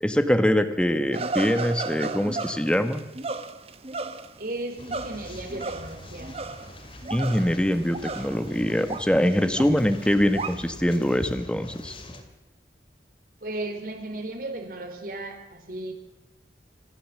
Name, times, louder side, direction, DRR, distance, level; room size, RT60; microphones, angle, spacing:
voice 1, 0.0-3.0 7.1-12.0, equal, 5° left, 8 dB, 1.3 m, -23 dB
sound 1, 1.1-6.7 7.0-8.6 8.9-10.5, right 3 dB, 35° right, 1.1 m, -34 dB
voice 2, 4.4-6.3 13.4-15.9, right 2 dB, 55° right, 5 dB, 3.9 m, -35 dB
sound 2, 4.8-12.2, left 1 dB, 30° left, 2.6 m, -43 dB
26.5 x 14.5 x 7.5 m, 1.0 s
head